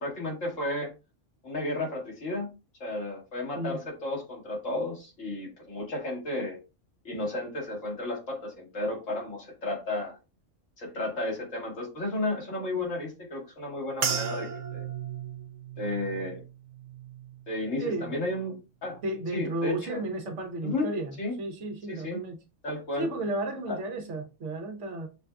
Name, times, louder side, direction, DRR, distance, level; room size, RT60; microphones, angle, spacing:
voice 1, 0.0-0.9 1.4-2.5 2.8-6.6 7.0-10.2 10.8-14.9 15.8-16.4 17.5-18.6 18.8-19.0 19.3-20.0 20.6-20.9 21.2-21.3 21.9-22.2 22.6-23.1 23.7-23.8, left 2 dB, 85° left, 2.1 m, -33 dB
sound 1, 14.0-18.5 18.9-19.5 20.1-20.4, right 7 dB, 55° right, 0.6 m, -37 dB
voice 2, 17.8-18.1 19.0-22.4 23.0-25.1, right 2 dB, 75° right, 1.2 m, -33 dB
6.1 x 2.4 x 2.2 m
omnidirectional pair, 1.3 m